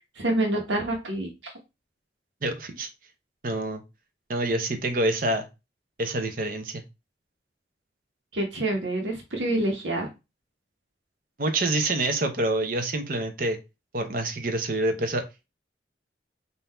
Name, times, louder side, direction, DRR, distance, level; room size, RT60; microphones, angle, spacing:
voice 1, 0.2-1.5 8.3-10.1, right 1 dB, 90° right, 1 dB, 1.2 m, -27 dB
voice 2, 2.4-2.9 3.4-3.8 4.3-5.5 6.0-6.8 11.4-13.6 13.9-15.2, right 2 dB, 50° right, 7 dB, 0.8 m, -27 dB
3.8 x 2.7 x 4.3 m, 0.26 s
head